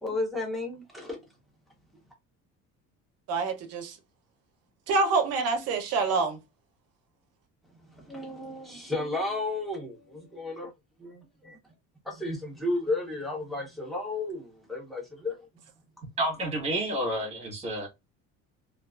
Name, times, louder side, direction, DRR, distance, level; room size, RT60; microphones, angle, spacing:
voice 1, 0.0-1.2 7.9-10.7 11.0-11.6 12.0-15.5, left 2 dB, ahead, 0.7 m, -33 dB
voice 2, 3.3-4.0 4.9-6.4, right 4 dB, 50° right, 0.6 m, -26 dB
voice 3, 16.2-17.9, right 1 dB, 20° right, 1.1 m, -29 dB
2.4 x 2.3 x 2.2 m
cardioid pair, 160°, 32 cm